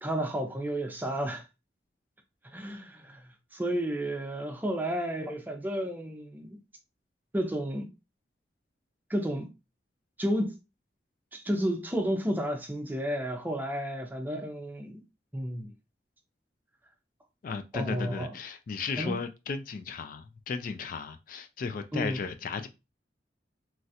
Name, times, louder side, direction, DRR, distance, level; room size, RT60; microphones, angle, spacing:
voice 1, 0.0-1.4 2.5-3.2 3.5-6.6 7.3-7.9 9.1-9.5 10.2-10.6 11.3-15.0 15.3-15.7 17.7-18.3 19.0-19.2 21.9-22.2, equal, 10° right, 0.5 m, -31 dB
voice 2, 17.4-22.7, left 5 dB, 50° left, 0.3 m, -35 dB
3.1 x 2.4 x 2.7 m
head